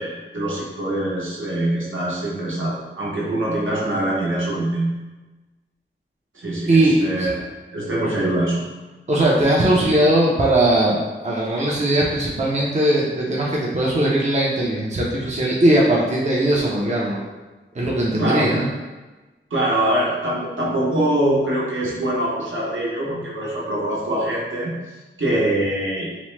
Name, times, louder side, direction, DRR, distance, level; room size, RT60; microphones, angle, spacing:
voice 1, 0.0-4.9 6.3-7.4 7.7-8.6 18.2-18.6 19.5-24.7 25.2-26.1, right 1 dB, 75° right, -6 dB, 0.9 m, -23 dB
voice 2, 6.7-7.3 9.1-17.2 17.7-18.7, right 1 dB, 35° right, -5 dB, 0.6 m, -19 dB
2.9 x 2.1 x 3.1 m, 1.2 s
wide cardioid pair, 70°, 21 cm